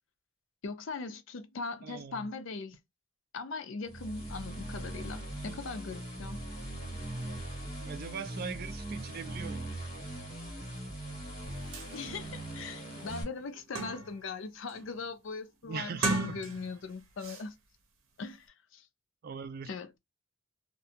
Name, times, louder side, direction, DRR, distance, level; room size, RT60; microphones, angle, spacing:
voice 1, 0.6-2.8 3.3-6.4 11.9-17.5 18.2-18.5 18.7-18.9 19.7-20.0, left 4 dB, 60° left, 0.4 m, -40 dB
voice 2, 1.8-2.3 5.5-5.6 7.8-9.7 15.6-16.4 19.2-19.7, right 6 dB, 45° right, 0.3 m, -41 dB
sound 1, 3.9-13.2, right 1 dB, 30° left, 1.2 m, -40 dB
sound 2, 11.4-11.5 11.7-11.9 12.4-12.5 13.0-14.3 14.7-15.0 15.9-16.9 17.2-17.4, right 2 dB, 75° right, 0.7 m, -35 dB
2.5 x 2.2 x 2.7 m
head